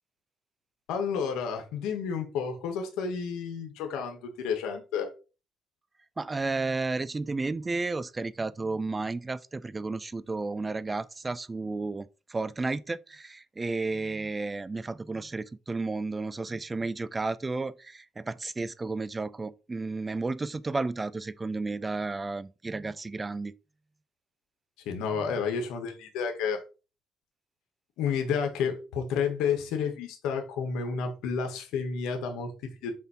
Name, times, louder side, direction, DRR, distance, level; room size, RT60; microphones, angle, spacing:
voice 1, 0.9-5.1 24.8-26.6 28.0-32.9, left 6 dB, 85° left, 1.5 m, -31 dB
voice 2, 6.2-23.5 25.1-25.4, right 3 dB, 20° right, 0.4 m, -32 dB
7.3 x 2.7 x 5.7 m
cardioid pair, 95°, 0 cm